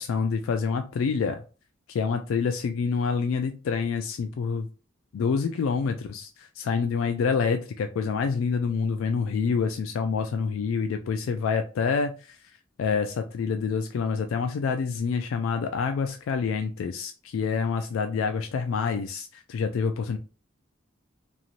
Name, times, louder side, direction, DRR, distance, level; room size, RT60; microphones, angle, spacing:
voice 1, 0.0-1.4 1.9-4.7 5.1-12.4 12.8-20.2, left 5 dB, 80° left, 6 dB, 0.3 m, -27 dB
3.0 x 2.6 x 2.4 m, 0.34 s
head